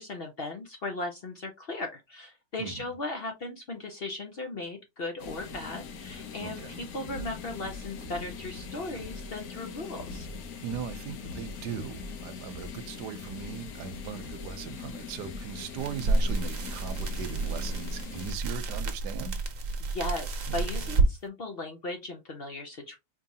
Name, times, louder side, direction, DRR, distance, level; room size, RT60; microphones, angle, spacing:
voice 1, 0.0-10.3 19.3-19.4 19.8-23.0, left 2 dB, 50° left, 0.7 m, -37 dB
sound 1, 5.2-18.3, left 5 dB, 70° left, 1.2 m, -42 dB
voice 2, 6.4-6.8 10.6-19.4, right 8 dB, 85° right, 1.2 m, -39 dB
sound 2, 7.0-19.3, equal, 30° right, 1.0 m, -46 dB
sound 3, 15.8-21.1, right 2 dB, 60° right, 1.1 m, -29 dB
4.5 x 3.0 x 2.7 m
omnidirectional pair, 1.7 m